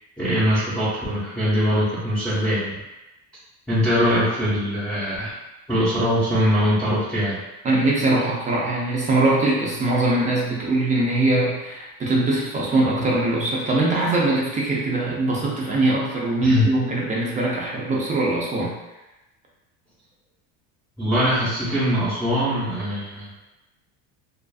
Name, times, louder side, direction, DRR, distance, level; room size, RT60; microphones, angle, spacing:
voice 1, 0.2-2.8 3.7-5.3 5.7-7.4 16.4-16.7 21.0-23.4, equal, ahead, -12 dB, 0.9 m, -22 dB
voice 2, 7.6-18.7, right 2 dB, 20° right, -4 dB, 0.6 m, -22 dB
2.5 x 2.5 x 2.3 m, 1.0 s
cardioid pair, 135°, 35 cm